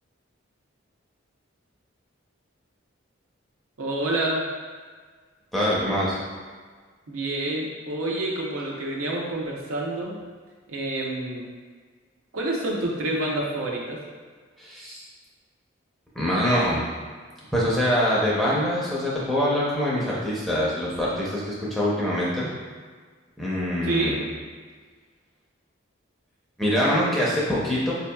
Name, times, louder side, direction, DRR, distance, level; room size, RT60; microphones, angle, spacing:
voice 1, 3.8-4.4 7.1-10.2 10.7-11.4 12.3-14.0 23.8-24.2, right 2 dB, 90° right, -2 dB, 0.7 m, -28 dB
voice 2, 5.5-6.2 14.6-15.0 16.1-16.8 17.5-22.5 23.4-24.2 26.6-27.9, equal, ahead, -7 dB, 0.5 m, -24 dB
4.5 x 2.8 x 2.2 m, 1.5 s
head